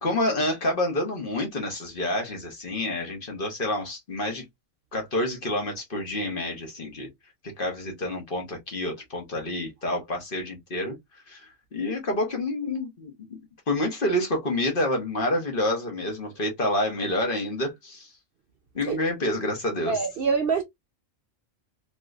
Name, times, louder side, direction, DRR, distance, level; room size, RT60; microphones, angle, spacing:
voice 1, 0.0-4.4 4.9-7.1 7.6-11.0 11.3-13.4 13.7-18.1 18.7-20.0, left 1 dB, 45° left, 1.2 m, -28 dB
voice 2, 19.9-20.6, right 5 dB, 60° right, 0.7 m, -25 dB
3.2 x 3.0 x 2.3 m
omnidirectional pair, 1.4 m